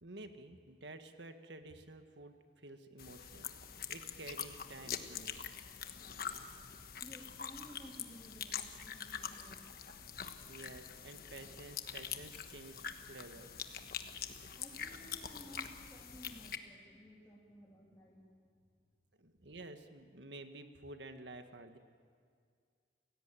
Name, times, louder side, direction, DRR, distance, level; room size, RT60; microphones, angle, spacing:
voice 1, 0.0-5.4 10.4-13.5 19.2-21.8, right 2 dB, 75° right, 7 dB, 1.7 m, -51 dB
sound 1, 3.0-16.6, left 8 dB, 55° left, 1.3 m, -45 dB
voice 2, 7.0-9.6 14.5-18.6, equal, 15° left, -4 dB, 3.2 m, -56 dB
30.0 x 17.0 x 9.1 m, 2.1 s
head